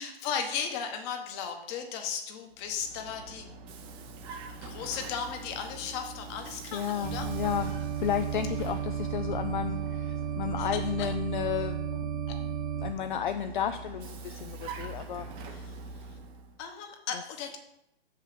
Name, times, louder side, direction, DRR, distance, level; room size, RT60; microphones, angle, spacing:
voice 1, 0.0-3.5 4.6-7.3 10.6-11.1 12.3-12.4 15.5-15.7 16.1-16.2 16.6-17.6, left 7 dB, 25° left, 5 dB, 1.1 m, -36 dB
Vehicle, 2.5-11.0 12.7-16.6, right 3 dB, 15° right, 0.7 m, -44 dB
voice 2, 6.7-15.5, left 9 dB, 50° left, 8 dB, 0.5 m, -33 dB
sound 1, 7.0-12.9, right 8 dB, 50° right, 1.0 m, -33 dB
6.5 x 5.6 x 6.5 m, 0.85 s
hypercardioid pair, 145°, 31 cm